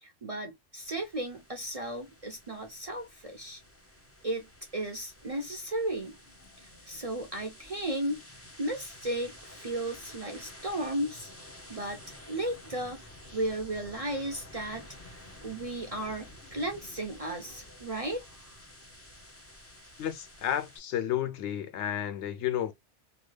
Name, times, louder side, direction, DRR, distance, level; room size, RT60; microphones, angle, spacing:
voice 1, 0.0-3.6 4.2-4.5 4.7-6.1 6.8-8.2 8.6-11.3 11.7-13.0 13.3-18.2, right 1 dB, 40° right, 0.5 m, -35 dB
sound 1, 0.8-20.8, left 1 dB, 15° left, 0.6 m, -51 dB
voice 2, 20.0-22.7, left 11 dB, 75° left, 0.9 m, -31 dB
2.8 x 2.2 x 3.2 m
omnidirectional pair, 1.2 m